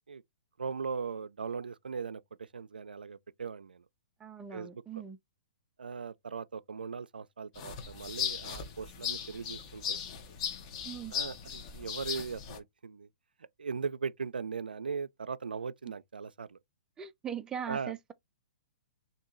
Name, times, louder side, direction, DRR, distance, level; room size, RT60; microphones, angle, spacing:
voice 1, 0.6-3.8 4.5-5.0 5.8-10.0 11.1-13.1 13.6-16.6 17.7-17.9, right 5 dB, 90° right, 0.3 m, -39 dB
voice 2, 4.2-5.2 10.8-11.1 17.0-18.1, right 8 dB, 15° right, 0.4 m, -40 dB
sound 1, 7.6-12.6, left 7 dB, 40° left, 0.9 m, -38 dB
2.9 x 2.6 x 3.6 m
hypercardioid pair, 130°, 5 cm